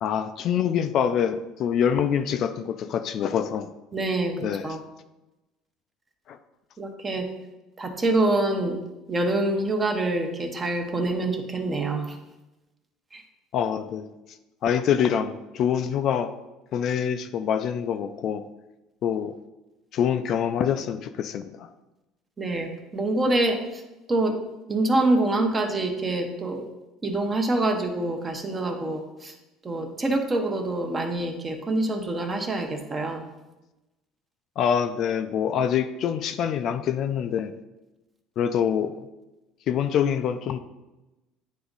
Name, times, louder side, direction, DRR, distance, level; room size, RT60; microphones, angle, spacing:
voice 1, 0.0-3.7 4.4-4.7 6.3-6.4 13.5-14.0 14.6-16.3 16.7-18.4 19.0-19.3 19.9-21.7 34.6-37.5 38.4-39.1 39.7-40.6, left 8 dB, 50° left, 9 dB, 0.4 m, -25 dB
voice 2, 3.9-4.4 4.6-4.8 6.8-7.3 7.8-8.8 9.1-12.2 13.1-13.2 22.4-23.8 24.1-24.4 24.7-26.7 27.0-29.3 29.6-33.2, right 2 dB, 20° right, 4 dB, 0.9 m, -26 dB
9.4 x 3.5 x 4.0 m, 1.0 s
cardioid pair, 135°, 0 cm